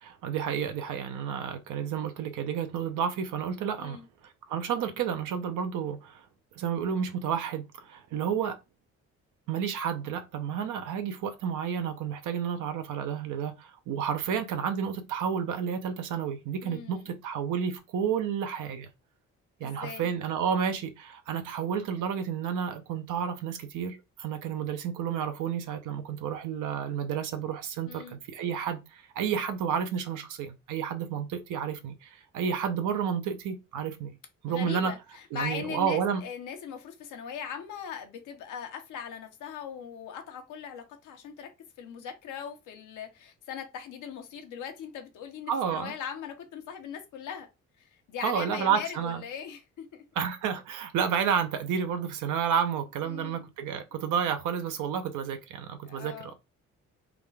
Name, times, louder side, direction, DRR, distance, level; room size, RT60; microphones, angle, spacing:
voice 1, 0.0-6.2 6.6-8.6 9.5-18.9 19.6-34.2 34.4-34.9 35.3-36.2 45.5-45.9 48.2-49.2 50.2-56.3, right 7 dB, 85° right, 0.8 m, -31 dB
voice 2, 16.6-17.1 19.6-20.1 27.9-28.2 34.5-41.5 41.8-47.5 47.8-50.0 53.0-53.5 53.9-54.1 55.8-56.3, left 7 dB, 85° left, 0.9 m, -40 dB
3.6 x 2.4 x 3.3 m
cardioid pair, 90°, 30 cm